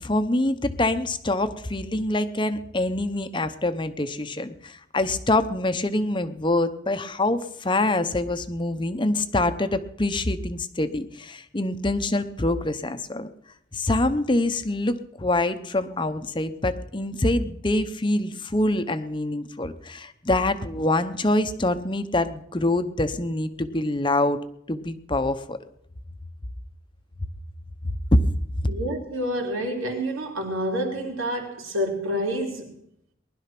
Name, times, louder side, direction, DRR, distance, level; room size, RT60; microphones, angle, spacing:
voice 1, 0.0-13.3 13.7-24.4 24.7-25.6 28.1-28.2, left 2 dB, 25° left, 0.8 m, -25 dB
voice 2, 28.7-32.7, equal, 85° right, 3.6 m, -28 dB
20.0 x 11.5 x 6.0 m
head